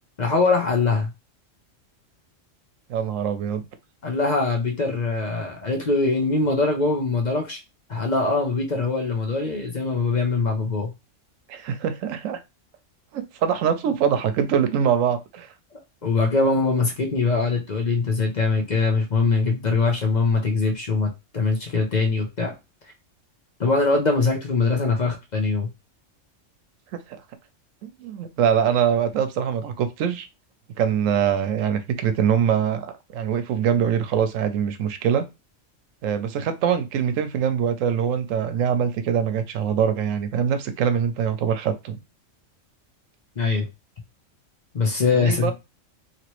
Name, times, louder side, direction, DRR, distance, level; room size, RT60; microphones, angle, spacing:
voice 1, 0.2-1.1 4.0-7.6 7.9-10.9 16.0-22.5 23.6-25.7 43.4-43.7 44.7-45.5, left 3 dB, 40° left, 0.7 m, -22 dB
voice 2, 2.9-3.6 11.5-12.4 13.1-15.5 27.1-27.2 27.8-30.3 30.8-35.2 36.0-42.0 45.1-45.5, right 8 dB, 90° right, 1.0 m, -23 dB
2.9 x 2.9 x 3.0 m
omnidirectional pair, 1.3 m